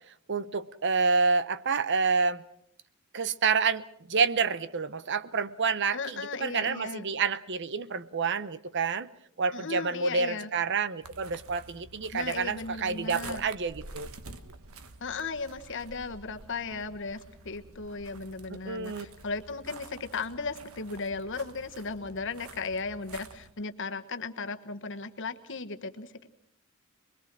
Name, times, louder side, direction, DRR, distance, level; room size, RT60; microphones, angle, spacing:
voice 1, 0.3-2.4 3.1-9.1 9.4-14.1 18.7-19.1, right 5 dB, 55° right, 0.8 m, -28 dB
voice 2, 5.9-7.0 9.5-10.5 12.1-13.4 15.0-17.2 17.4-26.3, left 4 dB, 60° left, 1.3 m, -36 dB
sound 1, 11.0-23.5, right 3 dB, 80° right, 1.4 m, -49 dB
24.5 x 22.0 x 6.1 m
head